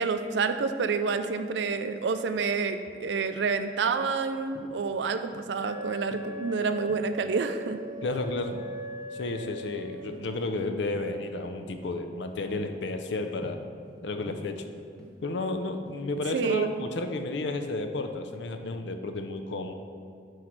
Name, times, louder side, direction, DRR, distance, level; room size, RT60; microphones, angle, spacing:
voice 1, 0.0-7.8 16.3-16.7, right 4 dB, 80° right, 9 dB, 0.4 m, -28 dB
sound 1, 4.5-5.6 6.1-7.3 7.7-8.1 8.5-9.7 9.9-10.5 10.9-11.2 11.7-12.0 12.3-14.0 14.3-15.4 15.7-17.2 17.5-17.8, equal, 5° left, 1.0 m, -48 dB
Wind instrument woodwind instrument, 5.6-10.0, equal, 50° left, 1.2 m, -40 dB
voice 2, 8.0-8.5 9.1-13.6 14.0-14.6 15.2-19.7, left 2 dB, 85° left, 6 dB, 0.5 m, -32 dB
7.9 x 3.2 x 5.9 m, 2.4 s
head